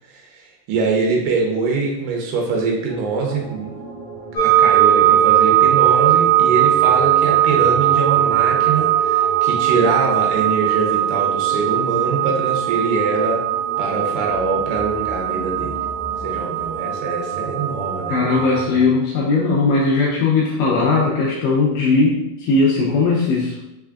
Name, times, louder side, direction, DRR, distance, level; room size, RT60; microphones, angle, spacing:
voice 1, 0.1-0.4 0.7-3.7 4.4-13.4 13.8-15.7 16.2-18.3, right 4 dB, 85° right, -1 dB, 2.6 m, -23 dB
sound 1, 2.9-18.9, right 3 dB, 70° right, 2.5 m, -36 dB
sound 2, 4.4-18.6, right 11 dB, 60° left, 2.2 m, -19 dB
voice 2, 18.1-23.6, left 3 dB, 85° left, -4 dB, 1.9 m, -18 dB
5.7 x 3.5 x 2.3 m, 0.90 s
omnidirectional pair, 4.6 m